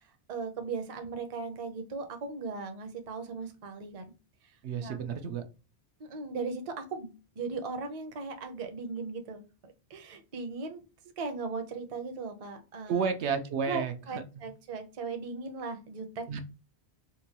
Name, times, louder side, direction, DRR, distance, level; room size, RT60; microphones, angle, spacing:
voice 1, 0.3-4.1 4.8-5.0 6.0-10.8 11.2-13.1 13.7-16.4, right 4 dB, 40° right, 6 dB, 0.6 m, -38 dB
voice 2, 4.6-5.4 12.9-14.4 16.3-16.4, right 6 dB, 85° right, 7 dB, 0.9 m, -32 dB
4.0 x 2.2 x 2.8 m, 0.31 s
omnidirectional pair, 1.1 m